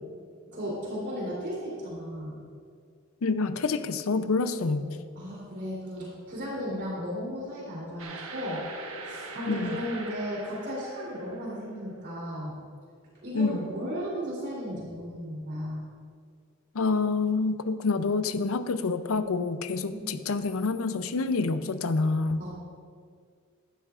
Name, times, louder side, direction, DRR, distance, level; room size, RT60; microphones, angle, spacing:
voice 1, 0.5-2.4 4.8-8.6 9.0-12.6 13.2-15.9 19.9-20.2 22.4-22.5, equal, 55° right, -5 dB, 3.3 m, -35 dB
voice 2, 3.2-4.8 9.5-9.7 13.3-13.5 16.7-22.4, left 4 dB, 85° left, 11 dB, 0.6 m, -27 dB
sound 1, 8.0-11.9, right 3 dB, 80° right, 1.3 m, -42 dB
15.5 x 12.0 x 2.5 m, 2.1 s
head